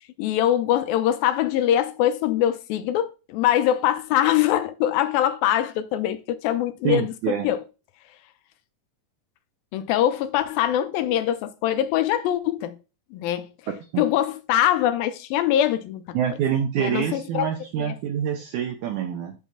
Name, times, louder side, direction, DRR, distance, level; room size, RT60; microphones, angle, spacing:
voice 1, 0.2-7.6 9.7-12.7 13.1-13.5 14.0-16.2 16.8-17.5 17.8-17.9, left 11 dB, 80° left, 2.4 m, -23 dB
voice 2, 6.8-7.5 13.9-14.1 16.1-19.3, right 9 dB, 80° right, 1.8 m, -26 dB
6.1 x 3.7 x 5.8 m
omnidirectional pair, 4.2 m